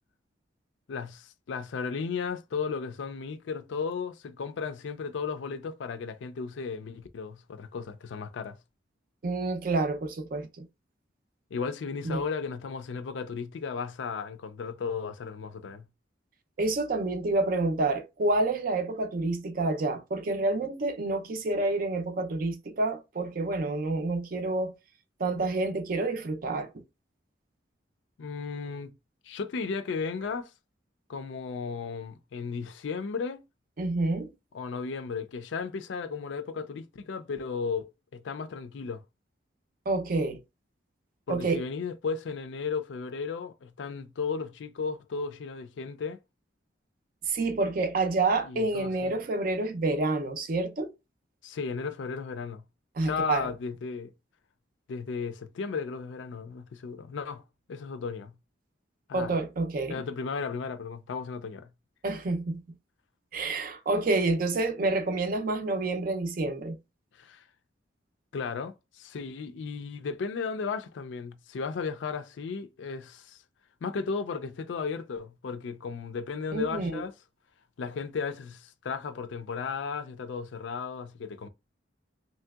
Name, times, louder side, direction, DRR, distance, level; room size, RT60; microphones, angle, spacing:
voice 1, 0.9-8.6 11.5-15.9 28.2-28.9 29.3-30.5 31.1-33.4 34.5-39.0 41.3-46.2 48.4-49.2 51.4-52.6 53.0-54.1 54.9-57.4 57.7-58.3 59.1-59.4 59.9-61.7 67.2-67.4 68.3-73.4 73.8-77.1 77.8-81.5, left 5 dB, 80° left, 0.4 m, -35 dB
voice 2, 9.2-10.7 12.0-12.2 16.6-24.7 25.2-26.7 33.8-34.3 39.9-40.4 41.3-41.6 47.3-50.9 53.0-53.5 59.1-60.0 62.0-62.6 63.3-66.8 76.5-77.0, right 2 dB, 50° right, 0.4 m, -28 dB
3.1 x 2.7 x 2.3 m
head